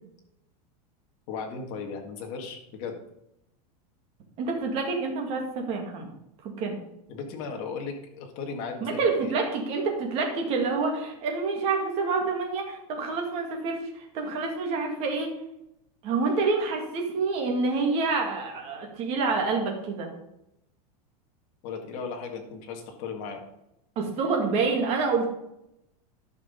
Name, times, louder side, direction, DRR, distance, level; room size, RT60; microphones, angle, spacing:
voice 1, 1.3-3.0 7.1-9.3 21.6-23.4, left 5 dB, 35° left, 2 dB, 1.8 m, -36 dB
voice 2, 4.4-6.1 6.4-6.8 8.8-15.3 16.0-20.1 24.0-25.4, right 4 dB, 30° right, 2 dB, 2.1 m, -27 dB
11.0 x 6.0 x 5.3 m, 0.83 s
supercardioid pair, 175°, 20 cm